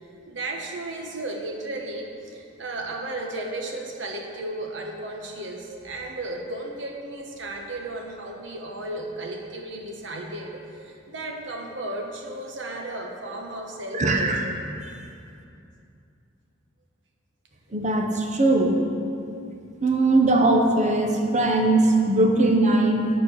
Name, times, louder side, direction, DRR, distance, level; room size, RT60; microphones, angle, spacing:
voice 1, 0.3-14.3, right 2 dB, 70° right, 1 dB, 1.1 m, -34 dB
voice 2, 13.9-14.4 17.7-18.8 19.8-23.1, right 2 dB, 40° right, 2 dB, 1.0 m, -20 dB
11.0 x 4.5 x 6.8 m, 2.6 s
head